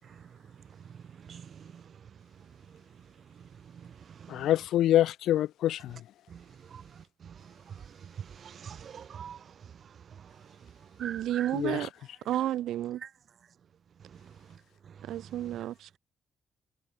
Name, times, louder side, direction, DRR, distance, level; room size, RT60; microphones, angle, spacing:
voice 1, 0.0-4.5 5.9-6.0 6.3-11.8 12.3-12.4 13.0-15.7, right 7 dB, 45° right, 4.0 m, -48 dB
voice 2, 4.3-6.0 11.5-11.9, left 12 dB, 85° left, 0.9 m, -26 dB
voice 3, 11.0-11.9 12.3-13.0 15.1-16.0, right 12 dB, 85° right, 1.8 m, -31 dB
cardioid pair, 150°, 0 cm